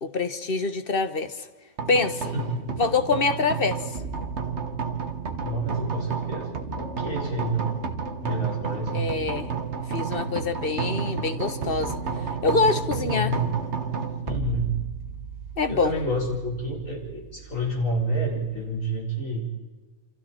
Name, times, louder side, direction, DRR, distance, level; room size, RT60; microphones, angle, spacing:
voice 1, 0.0-1.5 1.9-2.3 2.8-3.8 8.9-9.5 9.9-12.0 12.4-13.3 15.6-15.9, left 4 dB, 40° left, 9 dB, 1.4 m, -25 dB
sound 1, 1.8-19.0, right 5 dB, 55° right, 1.7 m, -32 dB
voice 2, 2.3-2.8 5.4-7.8 8.2-9.0 12.6-13.5 14.2-14.8 15.7-19.4, right 1 dB, 65° left, -1 dB, 5.3 m, -29 dB
29.0 x 25.5 x 4.5 m, 1.3 s
omnidirectional pair, 1.5 m